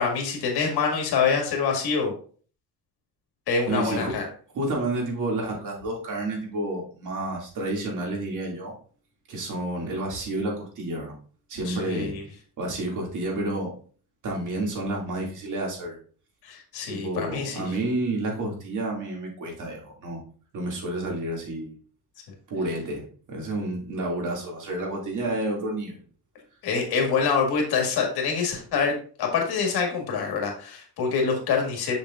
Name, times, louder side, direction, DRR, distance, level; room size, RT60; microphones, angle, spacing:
voice 1, 0.0-2.1 3.5-4.3 11.7-12.2 16.4-17.6 26.6-32.0, left 5 dB, 75° left, 2 dB, 1.9 m, -25 dB
voice 2, 3.7-4.1 4.5-8.7 9.3-11.1 11.5-12.1 12.6-13.7 14.2-16.0 16.9-20.2 20.5-21.7 22.5-23.0 23.3-26.0, right 2 dB, 50° right, -1 dB, 2.3 m, -30 dB
6.9 x 6.5 x 2.4 m, 0.43 s
cardioid pair, 155°, 38 cm